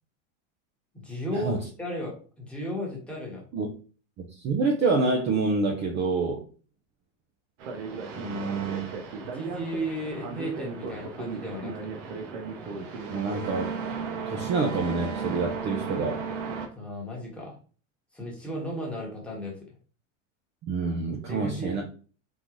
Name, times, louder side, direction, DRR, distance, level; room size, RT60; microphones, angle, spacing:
voice 1, 0.9-3.4 9.3-12.0 16.7-17.6 18.1-19.6 21.3-21.8, equal, 5° left, 1.1 m, -35 dB
voice 2, 4.2-6.4 8.1-8.9 13.1-13.8 14.3-16.2 20.6-21.8, right 3 dB, 30° right, 0.5 m, -27 dB
sound 1, 7.6-16.7, right 5 dB, 70° right, 1.2 m, -35 dB
3.9 x 3.8 x 3.0 m
supercardioid pair, 155°, 38 cm